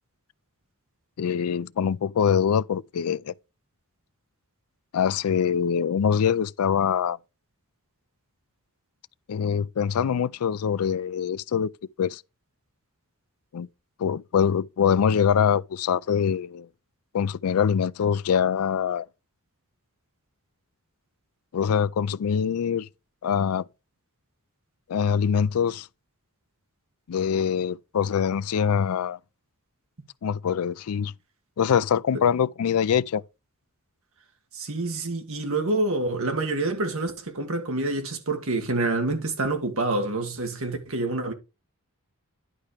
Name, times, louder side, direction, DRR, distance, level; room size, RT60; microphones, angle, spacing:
voice 1, 1.2-3.3 4.9-7.2 9.3-11.7 12.0-12.2 13.5-13.7 14.0-16.7 17.1-19.1 21.5-22.9 23.2-23.6 24.9-25.9 27.1-29.2 30.2-31.1 31.6-33.2, left 7 dB, 75° left, 0.4 m, -24 dB
voice 2, 34.5-41.3, right 2 dB, 65° right, 1.9 m, -27 dB
11.0 x 4.3 x 5.0 m
head